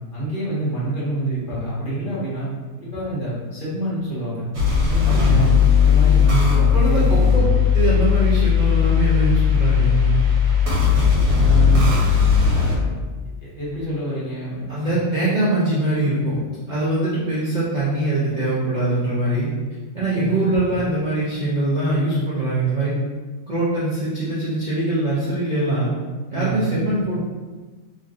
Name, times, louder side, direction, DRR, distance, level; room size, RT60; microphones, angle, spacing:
voice 1, 0.1-2.5 2.8-4.5 4.7-7.3 11.4-11.9 12.5-12.9 13.4-14.5 20.1-20.4 26.3-26.7, right 2 dB, 40° left, -10 dB, 1.2 m, -27 dB
Surachai Morphagene Reel, 4.5-12.8, left 7 dB, 85° right, 1.3 m, -17 dB
voice 2, 5.1-5.4 6.7-7.4 7.7-10.2 14.7-16.4 16.7-19.5 19.9-22.9 23.5-25.9 26.3-27.2, right 2 dB, 50° right, -10 dB, 0.6 m, -22 dB
3.1 x 2.6 x 2.6 m, 1.3 s
omnidirectional pair, 1.5 m